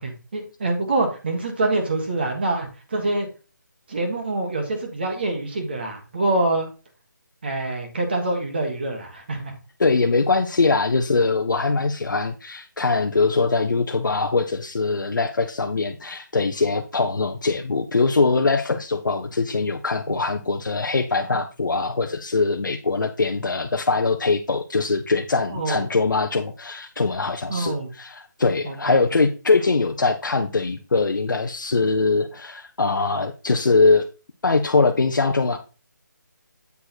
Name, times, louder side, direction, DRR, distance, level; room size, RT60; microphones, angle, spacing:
voice 1, 0.0-3.3 3.9-6.7 7.4-9.5 25.5-25.8 27.5-27.9 28.6-29.0, right 2 dB, 30° right, 2 dB, 1.5 m, -25 dB
voice 2, 9.8-34.1 34.4-35.6, left 3 dB, 80° left, 5 dB, 0.8 m, -22 dB
8.2 x 4.6 x 4.4 m, 0.34 s
figure-of-eight pair, 175°, 10 cm